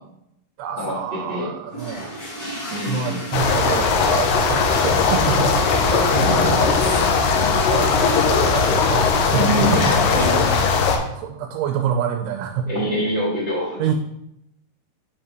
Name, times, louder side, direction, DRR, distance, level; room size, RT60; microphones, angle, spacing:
voice 1, 0.6-7.1 7.5-9.9 11.2-12.8 13.8-13.9, right 8 dB, 85° right, 4 dB, 2.5 m, -27 dB
sound 1, 1.7-10.2, equal, 35° left, 1.7 m, -37 dB
voice 2, 2.7-3.2 6.0-6.6 9.3-10.4 12.7-13.8, equal, 55° right, -6 dB, 1.2 m, -25 dB
sound 2, 3.3-11.0, left 5 dB, 85° left, 1.9 m, -18 dB
6.1 x 3.7 x 4.5 m, 0.81 s
omnidirectional pair, 4.6 m